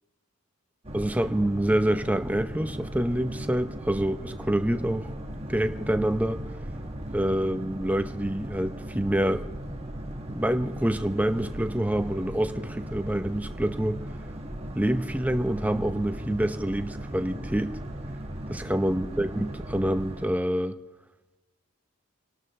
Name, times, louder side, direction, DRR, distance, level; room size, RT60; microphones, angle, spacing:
Boat Water vehicle, 0.8-20.3, equal, 30° right, 1.2 m, -37 dB
voice 1, 0.9-5.1 5.5-6.4 7.1-9.4 10.3-14.0 14.8-17.8 18.5-20.7, right 1 dB, 5° right, 8 dB, 0.7 m, -26 dB
29.0 x 12.5 x 3.3 m, 1.2 s
head